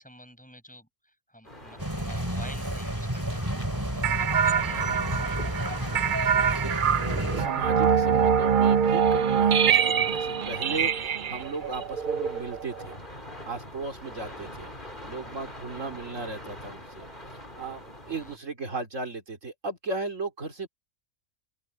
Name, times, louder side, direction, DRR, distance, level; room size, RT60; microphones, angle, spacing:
voice 1, 0.0-3.6 3.9-6.1 14.2-14.4 18.1-18.4, equal, 5° left, 6.9 m, -50 dB
sound 1, 1.4-18.4, left 1 dB, 35° left, 5.5 m, -44 dB
sound 2, 1.8-7.5, equal, 15° right, 4.0 m, -31 dB
sound 3, 4.0-12.9, right 7 dB, 50° right, 0.6 m, -24 dB
voice 2, 7.3-13.0 13.5-17.1 17.6-20.7, right 3 dB, 70° right, 3.5 m, -36 dB
open air
omnidirectional pair, 1.4 m